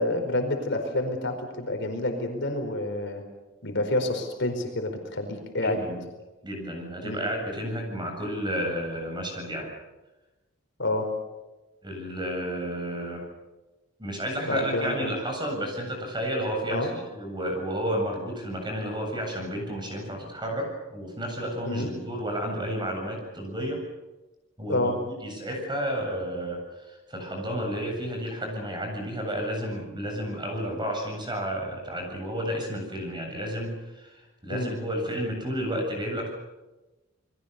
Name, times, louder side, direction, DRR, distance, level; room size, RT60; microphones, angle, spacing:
voice 1, 0.0-3.2 3.6-5.8 7.0-7.2 10.8-11.1 14.4-15.1 16.7-16.9 21.7-21.9 24.7-25.0 34.5-34.7, left 1 dB, 60° left, 5 dB, 4.7 m, -28 dB
voice 2, 5.6-6.0 6.4-9.7 11.8-13.2 14.0-23.8 24.6-24.9 25.2-36.3, equal, 25° right, 2 dB, 7.9 m, -31 dB
29.0 x 22.0 x 6.9 m, 1.1 s
head